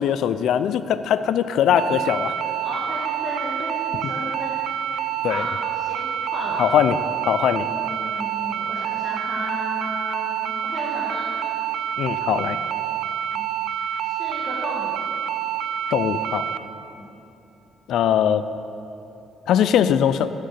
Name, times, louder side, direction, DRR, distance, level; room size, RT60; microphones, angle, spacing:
voice 1, 0.0-2.4 5.2-5.4 6.6-7.0 7.2-7.7 12.0-12.6 15.9-16.5 17.9-18.4 19.5-20.3, left 9 dB, 80° left, 13 dB, 0.4 m, -21 dB
sound 1, 1.8-16.6, right 9 dB, 70° right, 0.3 m, -27 dB
voice 2, 2.6-4.6 4.9-6.1 6.3-6.7 7.7-11.3 13.3-15.0 16.9-17.1, equal, 5° right, -8 dB, 1.8 m, -34 dB
6.6 x 6.6 x 7.7 m, 2.8 s
cardioid pair, 90°, 0 cm